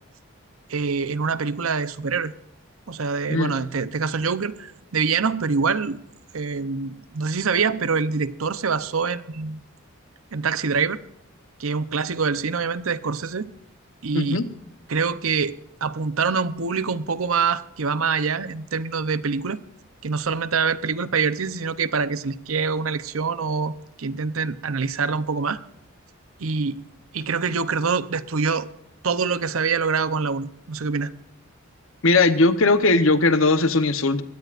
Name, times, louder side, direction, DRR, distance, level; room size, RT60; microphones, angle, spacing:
voice 1, 0.7-2.3 2.9-6.0 6.3-9.6 10.3-11.0 11.6-13.5 14.0-14.4 14.9-19.6 20.0-25.6 26.4-26.8 27.1-28.7 29.0-31.1, right 5 dB, 80° right, 0.8 m, -25 dB
voice 2, 14.1-14.5 32.0-34.2, left 3 dB, 70° left, 1.0 m, -19 dB
22.5 x 17.0 x 2.5 m
head